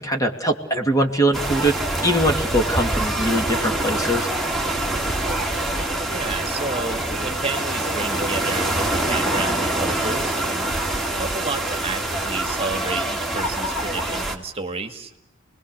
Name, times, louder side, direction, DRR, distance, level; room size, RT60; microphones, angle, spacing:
voice 1, 0.0-1.8 2.0-4.3, right 1 dB, 20° left, 4 dB, 2.7 m, -22 dB
sound 1, 1.3-14.4, right 1 dB, ahead, 2.8 m, -25 dB
voice 2, 6.1-10.7 11.2-15.3, right 3 dB, 30° right, 6 dB, 2.1 m, -31 dB
29.0 x 21.0 x 6.7 m, 0.79 s
head